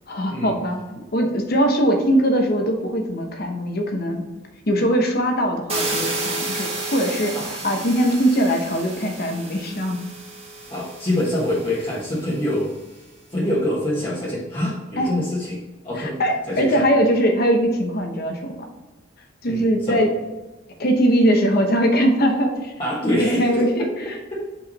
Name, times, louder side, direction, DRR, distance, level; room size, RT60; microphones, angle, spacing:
voice 1, 0.1-0.8 1.1-4.2 4.7-10.0 15.0-15.1 16.0-18.7 19.4-20.1 20.8-22.7 23.1-24.2, equal, 55° left, 4 dB, 1.0 m, -21 dB
sound 1, 5.7-12.5, right 2 dB, 30° right, 1.9 m, -31 dB
voice 2, 10.7-12.7 13.3-16.2 16.5-16.8 19.5-20.0 22.8-23.7 24.3-24.4, left 1 dB, 30° left, -8 dB, 1.3 m, -25 dB
5.8 x 4.9 x 4.0 m, 1.2 s
head